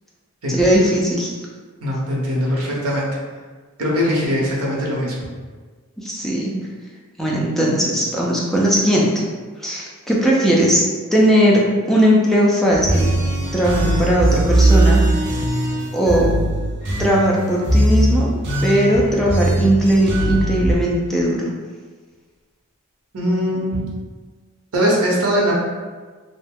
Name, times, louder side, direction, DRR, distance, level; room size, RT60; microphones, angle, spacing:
voice 1, 0.5-1.3 6.0-6.5 7.2-9.1 9.6-10.8 11.1-11.6 11.9-13.1 13.5-15.0 15.9-16.3 17.0-18.3 18.6-21.5, equal, ahead, -5 dB, 0.4 m, -18 dB
voice 2, 1.8-3.1 3.8-5.2 23.1-23.8 24.7-25.5, equal, 85° right, -3 dB, 0.8 m, -20 dB
sound 1, 12.7-20.7, right 1 dB, 55° right, 0.6 m, -19 dB
2.8 x 2.1 x 3.5 m, 1.4 s
head